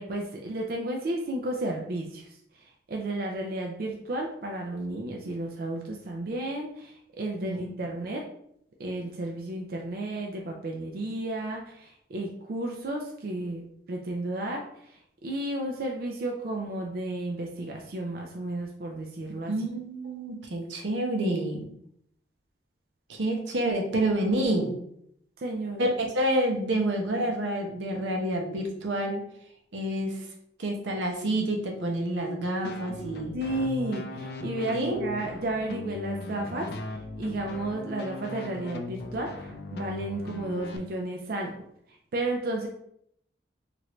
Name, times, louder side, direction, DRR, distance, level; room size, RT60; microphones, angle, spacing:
voice 1, 0.0-8.2 8.8-19.5 25.4-25.9 33.3-41.6 41.9-42.7, right 1 dB, 55° right, 1 dB, 0.4 m, -33 dB
voice 2, 19.5-21.7 23.1-24.8 25.8-29.2 29.7-30.2 30.6-33.3 34.7-35.0, right 1 dB, 90° right, 1 dB, 0.7 m, -28 dB
sound 1, 32.6-40.8, left 2 dB, 60° left, 0.4 m, -38 dB
3.2 x 2.5 x 3.0 m, 0.72 s
head